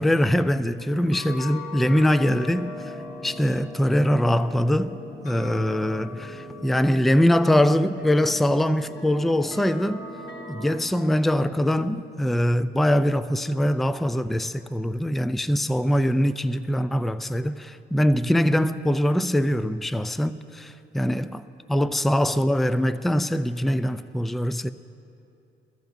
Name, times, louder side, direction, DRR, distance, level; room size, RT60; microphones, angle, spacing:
voice 1, 0.0-2.7 3.2-4.9 5.2-10.0 10.5-21.4 21.7-24.7, equal, ahead, 0.3 m, -23 dB
sound 1, 0.8-10.7, left 2 dB, 75° left, 2.9 m, -39 dB
22.5 x 14.0 x 2.7 m
cardioid pair, 90°, 20 cm